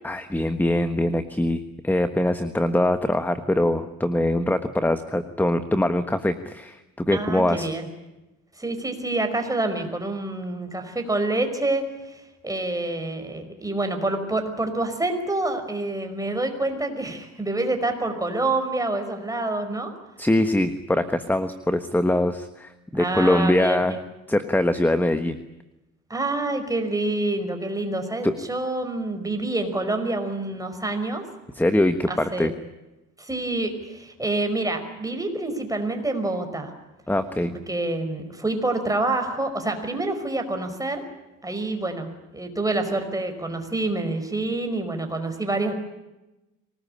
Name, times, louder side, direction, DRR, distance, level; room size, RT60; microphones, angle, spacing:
voice 1, 0.0-7.7 20.2-24.0 24.3-25.4 28.2-28.3 31.6-32.5 37.1-37.5, left 1 dB, 5° left, 10 dB, 1.4 m, -23 dB
voice 2, 7.1-7.9 8.6-19.9 22.9-24.0 26.1-31.2 32.1-32.5 33.2-36.7 37.7-41.0 41.4-45.7, right 2 dB, 10° right, 5 dB, 5.2 m, -27 dB
25.0 x 19.5 x 9.9 m, 0.99 s
cardioid pair, 110°, 31 cm